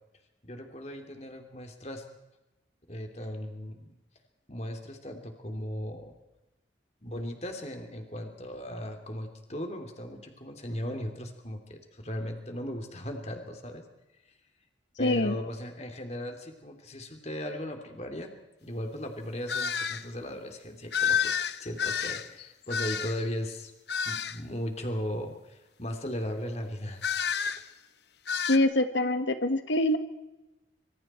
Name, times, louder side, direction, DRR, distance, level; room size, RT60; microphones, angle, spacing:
voice 1, 0.4-2.0 2.9-4.0 4.5-6.2 7.0-13.8 15.0-18.3 18.6-23.7 24.0-27.0, equal, 35° left, 5 dB, 3.2 m, -37 dB
voice 2, 15.0-15.4 28.5-30.0, left 1 dB, 80° left, 8 dB, 1.7 m, -25 dB
sound 1, 19.5-20.0 20.9-23.3 23.9-24.4 27.0-27.6 28.3-28.6, left 7 dB, 60° left, 1.0 m, -30 dB
26.0 x 25.5 x 4.5 m, 1.0 s
head